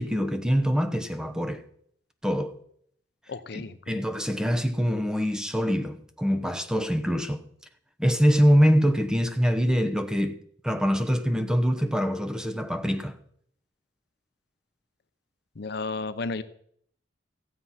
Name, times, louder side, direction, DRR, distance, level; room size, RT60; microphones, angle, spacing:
voice 1, 0.0-1.6 2.2-2.5 3.5-7.4 8.0-10.4 10.6-13.2, equal, 5° right, 0.9 m, -24 dB
voice 2, 3.3-4.0 15.6-16.4, left 3 dB, 60° left, 0.7 m, -33 dB
15.5 x 7.7 x 5.7 m
head